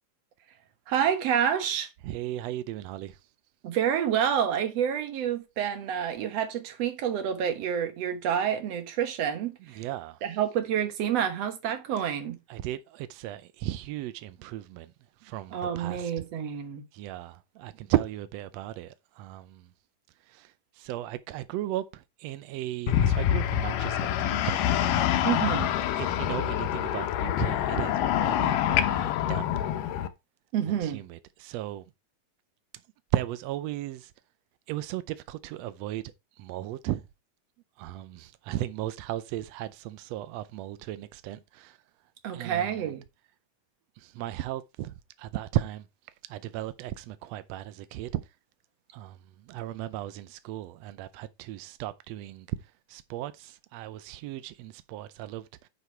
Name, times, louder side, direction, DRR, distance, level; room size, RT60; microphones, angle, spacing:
voice 1, 0.9-1.9 3.6-9.8 10.2-12.4 15.5-16.9 25.2-25.7 30.5-31.0 42.2-43.0, right 9 dB, 60° right, 2.2 m, -28 dB
voice 2, 2.0-3.1 9.8-10.2 12.5-14.9 15.2-16.1 16.9-19.6 20.3-20.5 20.8-21.8 22.2-24.7 25.4-25.6 26.0-29.5 30.8-31.8 33.1-34.1 34.7-36.0 36.4-37.0 37.8-41.7 42.3-42.9 44.0-44.9 45.2-45.8 46.3-48.1 48.9-49.2 49.5-52.5 52.9-55.4, right 14 dB, 85° right, 1.5 m, -35 dB
sound 1, 22.9-30.1, left 10 dB, 85° left, 2.4 m, -26 dB
9.7 x 4.9 x 4.5 m
omnidirectional pair, 3.7 m